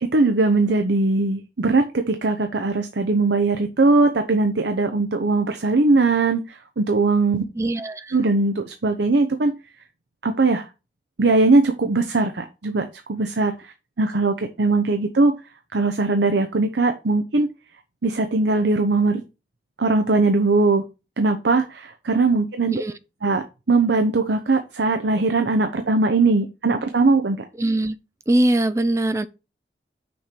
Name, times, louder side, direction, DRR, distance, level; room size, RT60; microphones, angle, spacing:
voice 1, 0.0-7.4 8.1-9.5 10.2-10.7 11.2-15.3 15.7-17.5 18.0-19.2 19.8-20.8 21.2-22.7 23.2-27.4, right 3 dB, 80° right, 0.8 m, -20 dB
voice 2, 7.6-8.1 22.7-23.0 27.6-28.0 28.3-29.3, right 1 dB, 15° right, 0.4 m, -21 dB
6.4 x 4.4 x 5.0 m
head